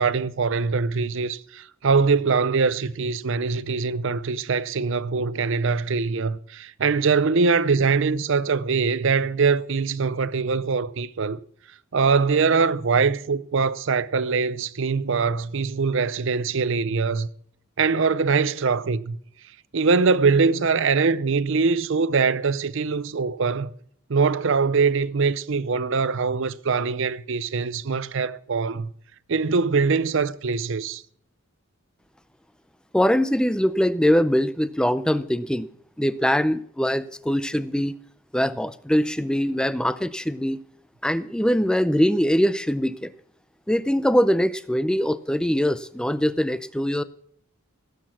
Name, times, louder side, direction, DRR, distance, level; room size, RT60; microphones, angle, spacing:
voice 1, 0.0-11.4 11.9-17.3 17.8-19.2 19.7-23.7 24.1-28.9 29.3-31.0, right 4 dB, 60° right, 0.6 m, -22 dB
voice 2, 32.9-35.7 36.0-38.0 38.3-40.6 41.0-43.1 43.7-47.0, equal, 5° left, 0.5 m, -22 dB
16.5 x 8.4 x 5.9 m
head